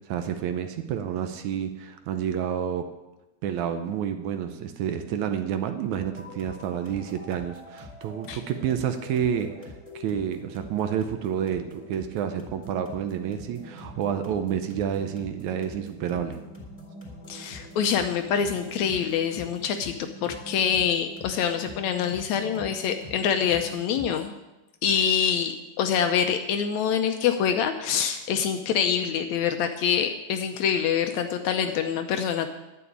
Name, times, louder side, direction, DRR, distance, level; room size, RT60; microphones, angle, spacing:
voice 1, 0.1-2.9 3.4-16.4, right 9 dB, 75° right, 8 dB, 2.0 m, -29 dB
sound 1, 5.9-24.4, left 1 dB, 5° left, 3.4 m, -44 dB
voice 2, 17.3-19.9 20.2-24.3 24.8-32.5, left 8 dB, 75° left, 6 dB, 1.8 m, -25 dB
11.0 x 6.9 x 8.6 m, 1.0 s
omnidirectional pair, 3.7 m